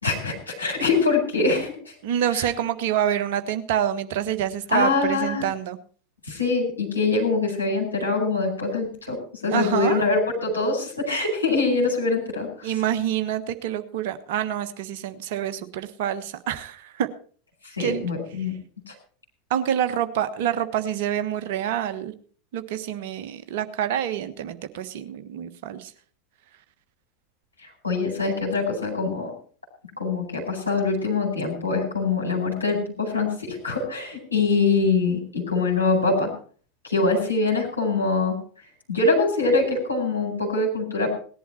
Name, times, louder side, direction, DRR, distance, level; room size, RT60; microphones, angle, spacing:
voice 1, 0.0-1.9 2.3-2.5 4.7-5.4 6.3-12.7 17.7-18.5 18.9-19.0 27.8-29.3 30.0-36.3 36.8-38.4 38.9-41.1, left 3 dB, 80° left, -1 dB, 4.6 m, -24 dB
voice 2, 2.0-5.8 9.5-10.1 12.6-17.1 17.8-18.1 19.5-22.1 22.5-25.9, right 10 dB, 55° right, 9 dB, 1.4 m, -27 dB
18.5 x 11.0 x 4.4 m, 0.43 s
figure-of-eight pair, 80°, 0 cm